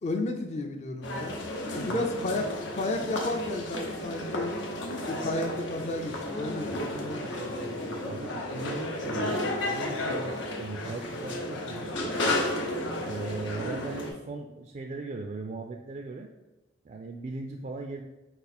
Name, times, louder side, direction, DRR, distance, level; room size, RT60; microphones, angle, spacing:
voice 1, 0.0-1.4 1.7-2.5 2.7-4.5 5.1-8.1, left 2 dB, 40° left, 3 dB, 0.4 m, -33 dB
sound 1, 1.0-14.1, left 1 dB, 90° left, 0.9 m, -33 dB
voice 2, 1.9-2.6 8.0-11.9 13.0-16.3 16.8-18.0, right 3 dB, 40° right, 4 dB, 0.3 m, -38 dB
5.3 x 2.4 x 4.1 m, 1.1 s
head